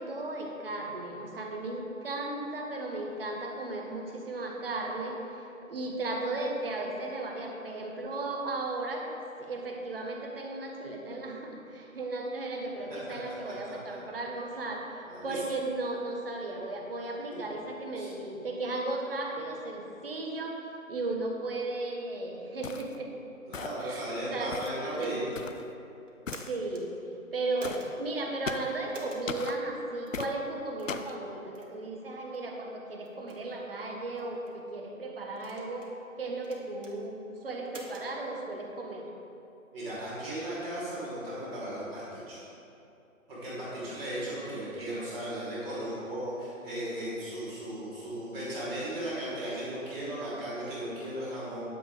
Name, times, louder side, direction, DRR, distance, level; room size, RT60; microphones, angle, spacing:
voice 1, 0.0-9.1 9.4-20.6 20.9-23.1 23.8-24.6 24.9-25.3 26.5-26.9 27.3-35.9 36.2-39.1 43.7-43.9 44.7-45.0, right 2 dB, 40° right, 1 dB, 1.5 m, -35 dB
voice 2, 13.2-13.7 15.0-15.4 17.3-17.5 17.9-18.1 23.5-25.2 39.7-42.4 43.3-51.6, right 1 dB, ahead, -23 dB, 0.7 m, -36 dB
sound 1, 22.6-23.0 23.5-23.9 24.5-24.8 25.3-25.6 26.3-26.5 27.6-27.9 28.5-28.8 29.3-29.6 30.1-30.3 30.9-31.2, left 6 dB, 65° left, 0.7 m, -38 dB
sound 2, 24.9-25.4 26.1-26.8 27.6-27.9 28.9-29.3 30.1-30.2 30.8-31.0 31.5-31.7 32.3-32.5 33.0-33.4 34.2-34.6 35.4-36.0 36.4-36.9 37.7-38.1, right 2 dB, 60° right, 1.9 m, -47 dB
10.0 x 9.6 x 3.9 m, 2.7 s
figure-of-eight pair, 150°, 42 cm